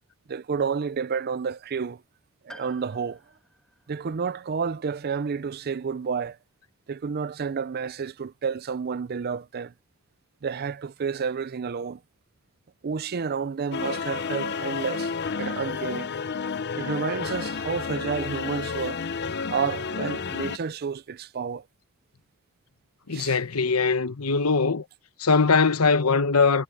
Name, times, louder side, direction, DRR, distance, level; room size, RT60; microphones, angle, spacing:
voice 1, 0.3-2.0 2.4-3.2 3.9-6.4 6.9-9.7 10.4-12.0 12.8-15.1 15.4-16.1 16.8-19.0 19.5-21.6 23.1-23.3, right 6 dB, 45° right, 0.4 m, -30 dB
Piano, 2.5-6.4 6.6-6.7 7.9-8.0, left 1 dB, 5° left, 2.3 m, -53 dB
sound 1, 13.7-20.6, left 5 dB, 50° left, 0.7 m, -31 dB
voice 2, 23.1-24.8 25.2-26.6, left 4 dB, 85° left, 1.1 m, -21 dB
head